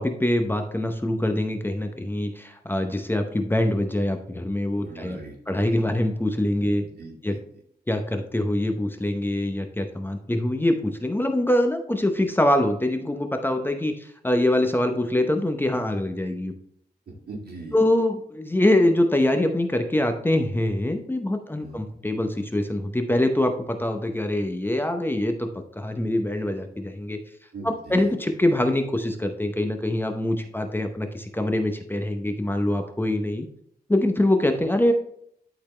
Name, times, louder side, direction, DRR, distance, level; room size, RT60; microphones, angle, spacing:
voice 1, 0.0-5.2 5.5-6.8 7.2-7.3 7.9-16.5 17.7-27.2 27.6-33.5 33.9-34.9, left 1 dB, 10° left, 5 dB, 0.7 m, -24 dB
voice 2, 4.8-6.0 6.6-7.6 17.1-17.8 21.6-21.8 27.5-28.1, right 2 dB, 70° right, -1 dB, 2.2 m, -41 dB
11.5 x 4.0 x 3.2 m, 0.70 s
wide cardioid pair, 110°, 17 cm